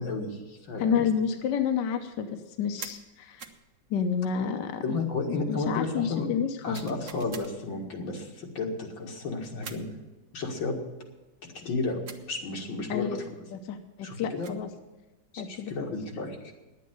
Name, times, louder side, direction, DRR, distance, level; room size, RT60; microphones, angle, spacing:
voice 1, 0.0-1.0 4.8-6.3 6.6-9.9 10.3-10.7 11.6-12.0 12.3-13.3 14.0-14.5 15.3-16.5, left 3 dB, 85° left, 1 dB, 2.7 m, -32 dB
voice 2, 0.8-3.4 3.9-5.0 5.3-6.9 12.9-13.2 13.5-14.7 15.4-15.7, left 7 dB, 65° left, 6 dB, 1.4 m, -30 dB
sound 1, 2.8-3.0 3.4-3.6 6.7-7.5 9.6-9.9 12.1-12.3 14.2-14.7, right 6 dB, 50° right, 1.1 m, -43 dB
10.5 x 8.4 x 9.4 m, 1.1 s
omnidirectional pair, 2.1 m